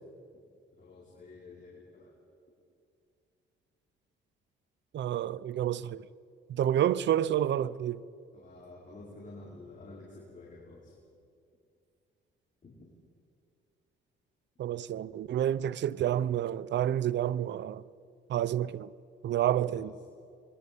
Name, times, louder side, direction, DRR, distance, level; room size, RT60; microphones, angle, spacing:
voice 1, 0.8-2.1 8.3-10.9 12.6-12.7 19.7-19.9, left 2 dB, 40° left, 5.3 m, -50 dB
voice 2, 4.9-6.0 6.5-8.0 14.6-17.8 18.3-18.9 19.2-19.9, right 11 dB, 65° right, 0.7 m, -29 dB
27.0 x 22.0 x 5.5 m
cardioid pair, 90°, 20 cm